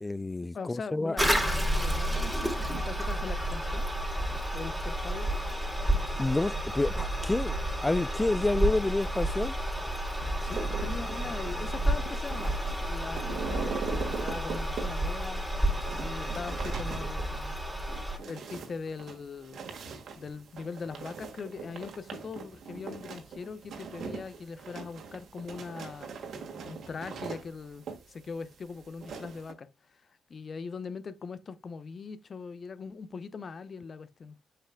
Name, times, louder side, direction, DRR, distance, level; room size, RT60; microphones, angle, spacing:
voice 1, 0.0-1.2 6.2-7.6 7.8-9.5, left 2 dB, 20° left, 0.3 m, -28 dB
voice 2, 0.5-3.9 4.5-5.3 10.4-12.5 12.8-15.4 16.0-17.6 18.3-19.6 20.2-26.1 26.7-30.0 30.3-34.4, left 5 dB, 50° left, 0.8 m, -41 dB
Toilet flush, 1.2-18.2, right 1 dB, ahead, 3.1 m, -31 dB
sound 1, 10.4-29.5, right 5 dB, 65° right, 1.7 m, -41 dB
8.3 x 5.9 x 2.3 m
supercardioid pair, 55°, 0 cm